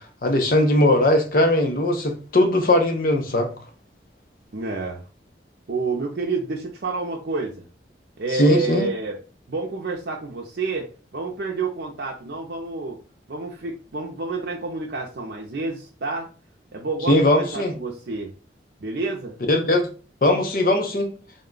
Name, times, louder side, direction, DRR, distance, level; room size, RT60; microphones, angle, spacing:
voice 1, 0.2-3.5 8.4-8.9 17.1-17.7 19.4-19.8 20.2-21.1, left 1 dB, 50° left, 0.6 m, -19 dB
voice 2, 4.5-5.0 5.7-7.7 8.2-9.2 9.5-10.9 11.1-13.0 13.3-16.3 16.7-18.3 18.8-19.4, right 3 dB, 70° right, 0.5 m, -29 dB
3.6 x 2.2 x 3.8 m
head